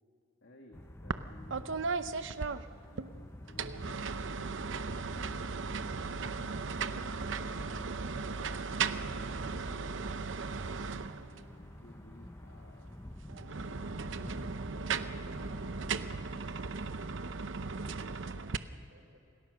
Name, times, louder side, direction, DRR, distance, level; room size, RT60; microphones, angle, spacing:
voice 1, 0.4-5.4 6.4-7.1 7.4-10.7 11.2-13.0 13.3-16.1, left 1 dB, 75° left, 1 dB, 2.1 m, -57 dB
sound 1, 0.7-16.2, left 1 dB, 15° left, 0.6 m, -50 dB
sound 2, 1.1-1.3 1.5-3.1 3.5-11.5 13.3-18.6, right 4 dB, 70° right, 0.7 m, -37 dB
voice 2, 17.1-19.2, right 1 dB, 90° right, 2 dB, 4.6 m, -59 dB
28.0 x 18.0 x 6.6 m, 2.6 s
head